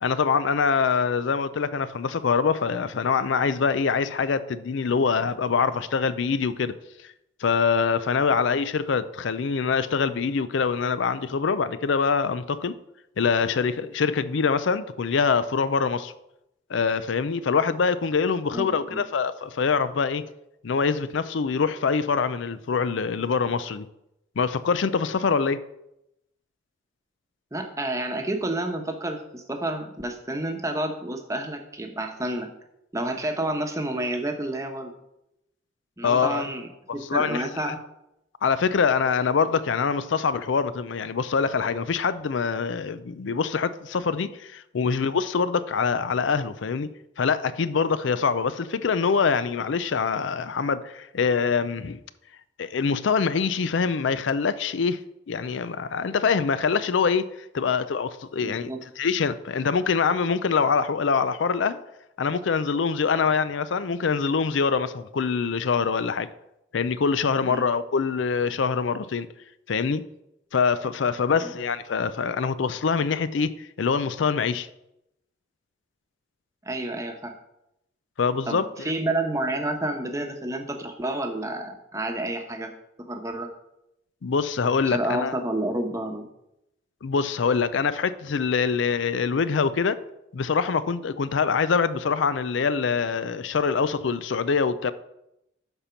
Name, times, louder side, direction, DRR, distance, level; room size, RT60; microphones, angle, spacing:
voice 1, 0.0-6.8 7.0-7.1 7.4-12.7 13.2-16.1 16.7-20.2 20.6-23.9 24.4-25.6 36.0-36.5 36.9-37.7 38.4-46.9 47.2-52.0 52.6-55.0 55.3-57.3 57.5-58.7 59.0-61.8 62.2-66.3 66.7-69.3 69.7-70.0 70.5-74.7 78.2-78.9 84.2-85.3 87.0-90.0 90.3-94.9, left 5 dB, 75° left, 0.5 m, -24 dB
voice 2, 18.5-19.0 27.5-32.5 32.9-35.0 36.0-37.8 58.4-58.8 67.4-67.7 71.3-71.5 76.6-77.3 78.5-82.7 83.0-83.5 84.8-86.3, right 1 dB, 15° right, 0.9 m, -30 dB
12.0 x 4.3 x 5.8 m
head